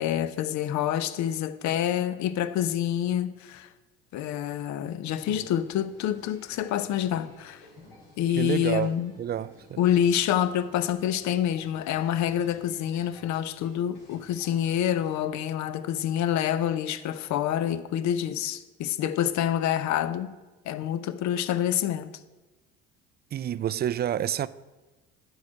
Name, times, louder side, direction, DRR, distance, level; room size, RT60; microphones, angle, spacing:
voice 1, 0.0-3.7 4.1-7.6 8.2-9.1 9.8-20.3 20.6-22.1, left 10 dB, 55° left, 0.7 m, -27 dB
sound 1, 5.2-15.2, left 2 dB, 80° left, 3.3 m, -52 dB
voice 2, 8.3-8.9 9.2-9.8 23.3-24.5, right 10 dB, 30° right, 0.4 m, -28 dB
10.5 x 4.7 x 6.2 m
hypercardioid pair, 65°, 33 cm